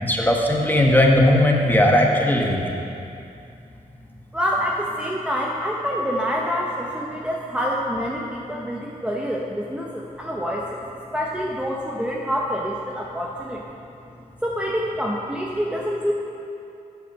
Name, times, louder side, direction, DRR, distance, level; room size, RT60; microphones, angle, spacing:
voice 1, 0.0-2.8, left 1 dB, 10° left, 0 dB, 1.4 m, -18 dB
voice 2, 4.3-10.8 11.1-13.6 14.4-16.1, equal, 5° right, -3 dB, 0.9 m, -26 dB
8.0 x 5.8 x 7.2 m, 2.7 s
cardioid pair, 65°, 15 cm